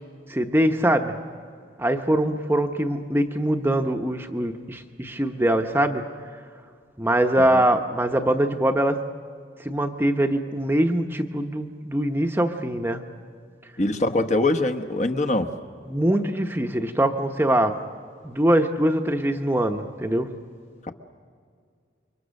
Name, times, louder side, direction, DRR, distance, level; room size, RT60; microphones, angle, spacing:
voice 1, 0.3-1.1 1.8-6.0 7.0-9.0 9.6-13.0 15.9-17.8 18.2-20.3, right 1 dB, 10° right, 5 dB, 0.9 m, -23 dB
voice 2, 13.8-15.5, left 2 dB, 40° left, 7 dB, 1.1 m, -23 dB
29.0 x 24.0 x 6.5 m, 2.1 s
head